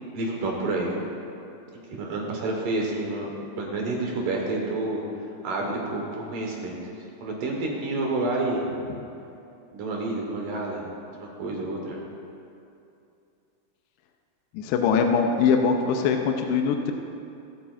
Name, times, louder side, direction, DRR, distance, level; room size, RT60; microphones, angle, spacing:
voice 1, 0.1-1.1 1.9-3.3 3.6-5.0 5.4-6.8 7.2-8.6 9.7-10.9 11.2-12.0, right 2 dB, 65° right, -1 dB, 2.4 m, -29 dB
voice 2, 14.5-16.9, left 6 dB, 85° left, 4 dB, 2.7 m, -22 dB
24.5 x 8.3 x 2.4 m, 2.6 s
omnidirectional pair, 4.9 m